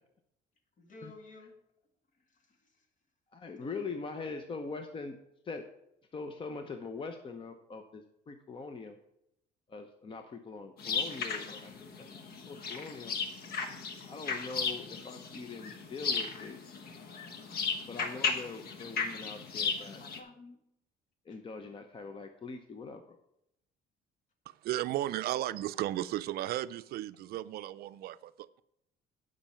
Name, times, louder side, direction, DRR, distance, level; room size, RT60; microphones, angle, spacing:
voice 1, 0.8-1.6 2.3-2.9 3.6-4.9 20.0-20.6 21.3-21.4, left 2 dB, 50° left, 5 dB, 2.0 m, -53 dB
voice 2, 3.3-5.2 5.5-5.6 6.1-9.0 9.7-11.6 12.0-12.1 12.5-13.1 14.0-16.6 17.9-20.0 21.3-23.2, left 4 dB, 30° left, 6 dB, 0.8 m, -42 dB
sound 1, 10.8-20.2, left 5 dB, 65° left, 1.3 m, -36 dB
voice 3, 24.6-28.6, right 14 dB, 65° right, 14 dB, 0.4 m, -35 dB
10.5 x 5.4 x 5.6 m, 0.79 s
cardioid pair, 110°, 17 cm